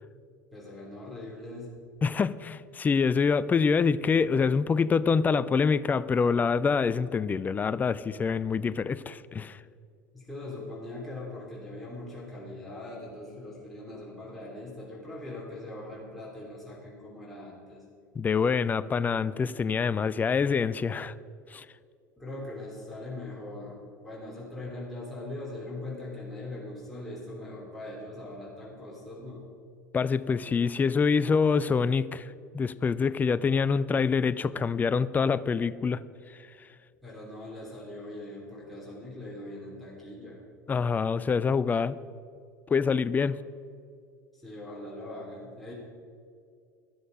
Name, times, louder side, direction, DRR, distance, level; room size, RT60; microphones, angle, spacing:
voice 1, 0.5-1.7 10.1-17.8 22.2-29.4 37.0-40.4 44.3-45.7, left 2 dB, ahead, -6 dB, 3.0 m, -41 dB
voice 2, 2.0-9.6 18.2-21.1 21.5-21.7 29.9-36.0 40.7-42.0 42.7-43.4, left 5 dB, 15° left, 17 dB, 0.4 m, -26 dB
13.0 x 12.0 x 4.9 m, 2.4 s
figure-of-eight pair, 75°, 10 cm